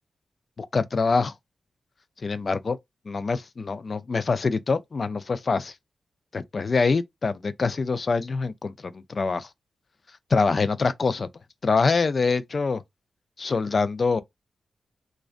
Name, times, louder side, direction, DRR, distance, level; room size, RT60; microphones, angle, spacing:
voice 1, 0.6-1.3 2.2-2.8 3.1-5.7 6.3-9.5 10.3-11.3 11.6-12.8 13.4-14.2, left 4 dB, 55° left, 0.3 m, -25 dB
2.5 x 2.1 x 2.4 m
cardioid pair, 60°, 0 cm